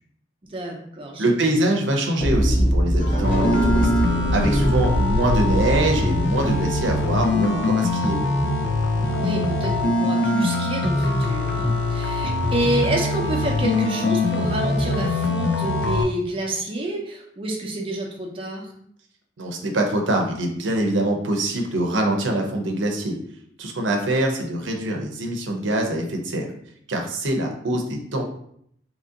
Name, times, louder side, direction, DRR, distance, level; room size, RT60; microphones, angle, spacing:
voice 1, 0.4-1.4 9.0-18.7, right 1 dB, 30° right, -1 dB, 0.6 m, -28 dB
voice 2, 1.2-3.9 4.3-8.2 19.4-23.2 23.6-26.5 26.9-28.2, right 1 dB, 90° right, 2 dB, 0.6 m, -24 dB
sound 1, 2.2-8.2, equal, 45° left, 1.3 m, -23 dB
sound 2, 3.2-16.0, left 2 dB, 65° left, 0.5 m, -23 dB
2.9 x 2.7 x 3.7 m, 0.68 s
head